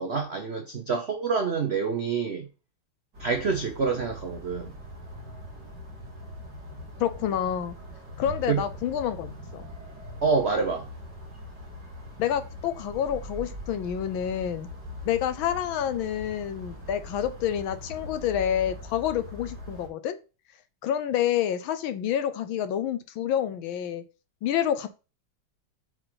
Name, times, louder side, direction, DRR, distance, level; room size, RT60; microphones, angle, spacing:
voice 1, 0.0-2.5 3.2-4.7 8.5-8.6 10.2-10.9, right 5 dB, 70° right, 0.6 m, -27 dB
sound 1, 3.1-19.9, left 1 dB, 50° right, 3.2 m, -42 dB
voice 2, 7.0-7.7 8.2-9.7 12.2-14.7 15.1-20.2 20.8-24.0 24.4-24.9, left 10 dB, 75° left, 1.4 m, -28 dB
7.8 x 4.8 x 3.9 m
omnidirectional pair, 2.4 m